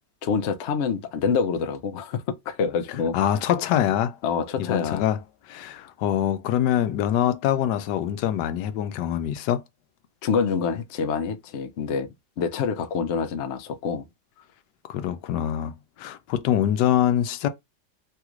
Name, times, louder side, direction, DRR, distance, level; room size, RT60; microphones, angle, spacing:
voice 1, 0.2-3.3 4.2-5.1 10.2-12.1 12.4-14.1, left 6 dB, 65° left, 0.7 m, -26 dB
voice 2, 3.1-4.2 4.6-5.2 5.5-9.6 14.9-17.5, left 11 dB, 90° left, 1.2 m, -24 dB
3.4 x 2.4 x 2.9 m
omnidirectional pair, 1.8 m